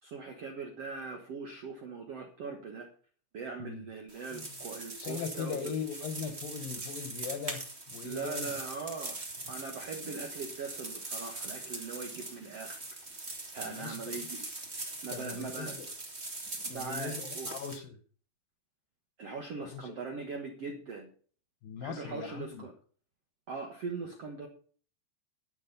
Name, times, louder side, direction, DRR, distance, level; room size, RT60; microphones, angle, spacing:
voice 1, 0.0-2.9 3.3-5.6 8.0-9.2 9.5-12.8 13.5-14.4 15.0-15.8 16.6-17.5 19.2-21.1 21.8-22.7 23.5-24.5, right 4 dB, 70° right, 3 dB, 1.5 m, -40 dB
sound 1, 4.1-17.8, right 2 dB, 35° right, 1.0 m, -41 dB
voice 2, 5.0-7.6 7.9-8.5 10.0-10.2 13.6-14.2 15.1-15.9 16.7-18.0 19.6-20.0 21.6-22.7, left 6 dB, 70° left, 9 dB, 2.4 m, -40 dB
11.5 x 8.7 x 5.3 m, 0.43 s
omnidirectional pair, 4.9 m